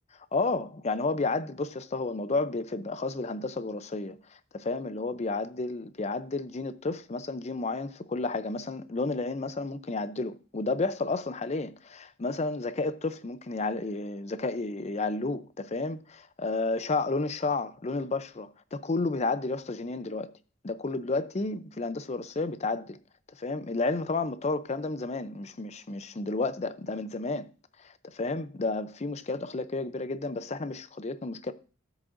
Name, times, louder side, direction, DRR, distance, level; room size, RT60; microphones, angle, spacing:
voice 1, 0.3-20.3 20.6-23.0 23.3-27.5 27.8-31.5, left 3 dB, 35° left, 0.5 m, -31 dB
13.5 x 7.6 x 2.5 m
head